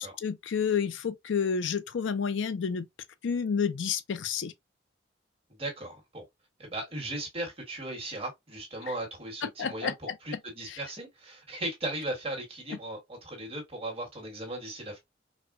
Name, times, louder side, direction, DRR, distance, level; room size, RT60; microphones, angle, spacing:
voice 1, 0.0-2.9 3.2-4.5 9.4-10.1 10.7-10.8, left 6 dB, 80° left, 0.4 m, -30 dB
voice 2, 5.5-6.2 6.6-15.0, right 1 dB, 30° right, 1.5 m, -37 dB
4.2 x 2.2 x 2.3 m
head